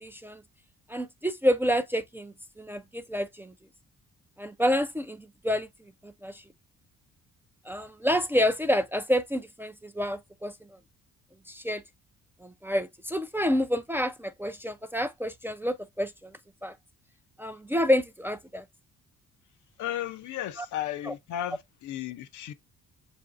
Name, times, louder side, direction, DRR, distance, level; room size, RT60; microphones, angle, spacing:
voice 1, 0.0-0.4 0.9-3.5 4.4-5.7 6.0-6.4 7.7-10.5 11.5-11.8 12.4-16.3 16.6-16.7 17.4-18.6 20.6-20.7 21.1-21.2, equal, 5° right, 0.4 m, -28 dB
voice 2, 19.8-22.5, left 12 dB, 75° left, 0.6 m, -34 dB
6.7 x 2.6 x 2.4 m
cardioid pair, 90°, 30 cm